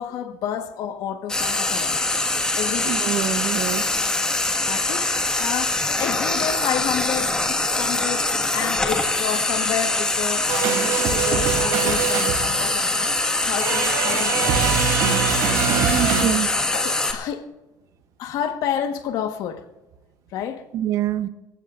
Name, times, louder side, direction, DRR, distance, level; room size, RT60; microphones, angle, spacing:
voice 1, 0.0-2.0 2.5-3.0 4.7-15.0 16.7-17.5 18.2-19.7 20.3-20.7, left 9 dB, 65° left, 1.5 m, -30 dB
Frying (food), 1.3-17.1, left 2 dB, 10° left, 1.8 m, -23 dB
voice 2, 2.8-3.8 15.9-16.5 20.7-21.3, right 11 dB, 55° right, 1.0 m, -25 dB
sound 1, 10.5-12.9 13.6-16.2, right 8 dB, 80° right, 3.1 m, -23 dB
25.5 x 15.0 x 2.6 m
cardioid pair, 155°, 7 cm